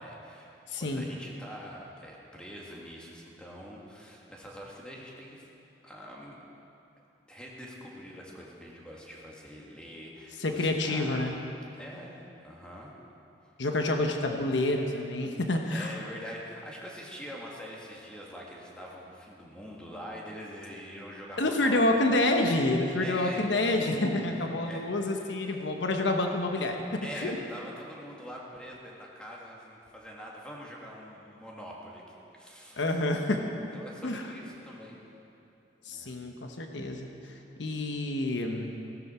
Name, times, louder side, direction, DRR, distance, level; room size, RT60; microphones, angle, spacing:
voice 1, 0.0-5.5 5.8-6.4 7.3-11.3 11.7-12.9 15.7-22.1 23.0-23.5 24.1-25.6 27.0-32.8 33.7-35.0 35.9-36.2, equal, 5° left, -3 dB, 1.9 m, -44 dB
voice 2, 0.7-1.0 10.4-11.3 13.6-15.9 21.4-26.8 27.2-27.4 32.8-33.4 34.0-34.2 35.9-37.1 37.6-38.7, left 2 dB, 80° left, 3 dB, 1.1 m, -28 dB
17.0 x 13.0 x 4.4 m, 2.7 s
head